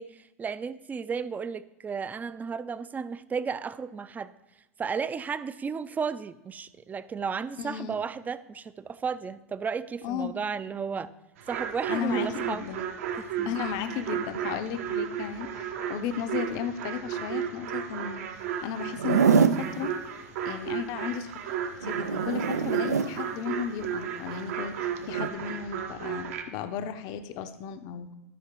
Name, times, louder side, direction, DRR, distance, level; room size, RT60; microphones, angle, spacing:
voice 1, 0.0-4.3 4.8-11.1 11.5-12.6 13.4-13.5 16.0-16.1, right 6 dB, 20° right, 16 dB, 0.4 m, -33 dB
voice 2, 7.6-8.0 10.0-10.3 11.9-12.8 13.5-19.9 20.4-21.3 21.8-28.1, left 8 dB, 50° left, 10 dB, 0.7 m, -34 dB
sound 1, 11.4-26.4, right 8 dB, 65° right, 1.1 m, -34 dB
Zipper (clothing), 18.9-19.7 21.8-23.1 25.0-25.3, right 6 dB, 85° right, 0.4 m, -24 dB
13.0 x 5.5 x 3.7 m, 1.0 s
hypercardioid pair, 85°, 8 cm